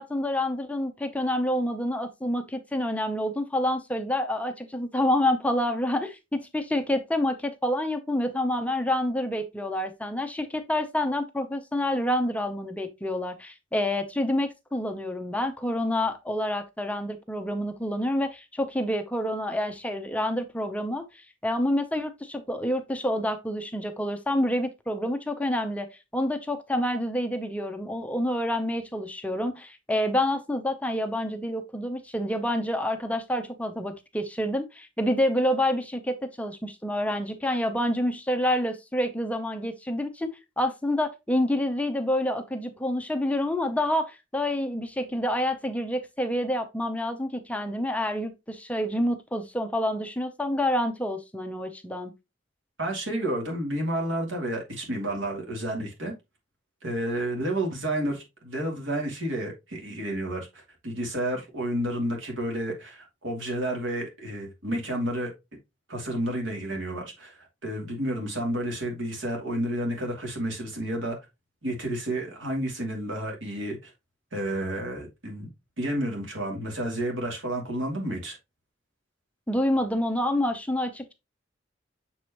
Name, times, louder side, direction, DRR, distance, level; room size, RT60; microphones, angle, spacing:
voice 1, 0.0-21.0 21.4-25.9 26.1-40.3 40.6-52.1 79.5-81.1, left 1 dB, 10° left, 0.7 m, -28 dB
voice 2, 52.8-56.1 56.8-65.3 65.9-71.2 71.6-73.9 74.3-75.5 75.8-78.4, right 1 dB, 80° right, 2.6 m, -30 dB
7.0 x 4.8 x 2.9 m
head